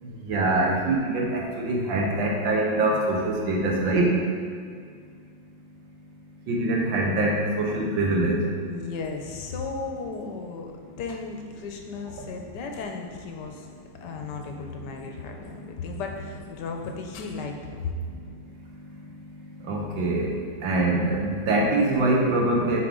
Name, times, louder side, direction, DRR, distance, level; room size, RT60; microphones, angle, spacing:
voice 1, 0.0-4.2 6.5-8.4 12.2-12.3 19.6-20.4 20.6-22.8, right 2 dB, 80° right, -1 dB, 1.8 m, -24 dB
voice 2, 8.6-13.7 14.0-17.9, left 4 dB, 75° left, 3 dB, 1.2 m, -35 dB
8.6 x 4.3 x 3.7 m, 2.2 s
omnidirectional pair, 2.0 m